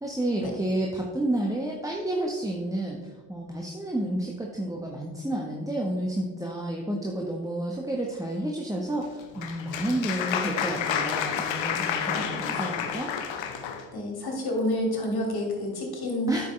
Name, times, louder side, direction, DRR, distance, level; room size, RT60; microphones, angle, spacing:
voice 1, 0.0-3.0 3.3-13.1 16.3-16.5, right 1 dB, 5° right, -1 dB, 1.2 m, -30 dB
Applause, 9.0-13.8, left 8 dB, 65° left, 1.0 m, -30 dB
voice 2, 13.9-16.3, left 1 dB, 50° left, 0 dB, 2.6 m, -29 dB
9.1 x 6.4 x 3.3 m, 1.3 s
hypercardioid pair, 40°, 49 cm